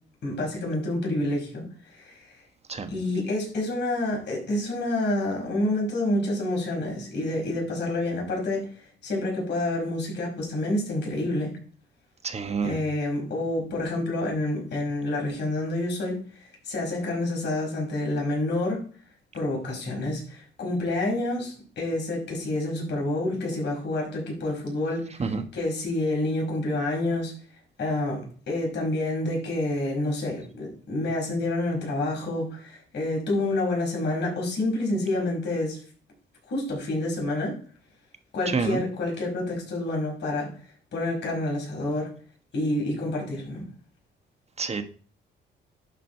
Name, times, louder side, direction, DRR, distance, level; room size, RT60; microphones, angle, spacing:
voice 1, 0.2-2.3 2.9-8.7 9.0-11.5 12.6-18.8 19.3-27.3 27.8-35.8 36.5-37.6 38.3-40.5 40.9-42.1 42.5-43.6, left 1 dB, 60° left, 5.4 m, -28 dB
voice 2, 12.2-12.8 25.2-25.4 38.5-38.8 44.6-44.8, right 4 dB, 30° right, 1.3 m, -28 dB
11.5 x 5.0 x 4.5 m
cardioid pair, 90°, 20 cm